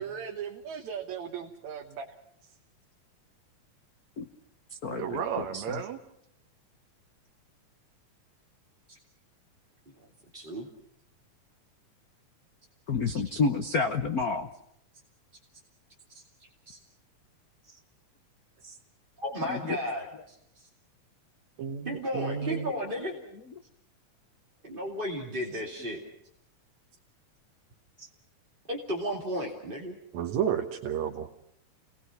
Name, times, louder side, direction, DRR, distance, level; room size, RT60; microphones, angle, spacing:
voice 1, 0.0-2.2 4.9-6.0 21.6-22.7 30.1-31.3, right 8 dB, 75° right, 3 dB, 2.6 m, -33 dB
voice 2, 4.8-5.2 5.5-5.6 12.9-14.5, left 4 dB, 75° left, 7 dB, 0.8 m, -28 dB
voice 3, 10.3-10.7 13.1-13.2 16.1-16.8 19.2-20.7 21.8-23.1 24.6-26.0 28.7-30.0, equal, 20° right, -2 dB, 2.4 m, -34 dB
29.5 x 20.0 x 5.9 m, 0.72 s
omnidirectional pair, 3.3 m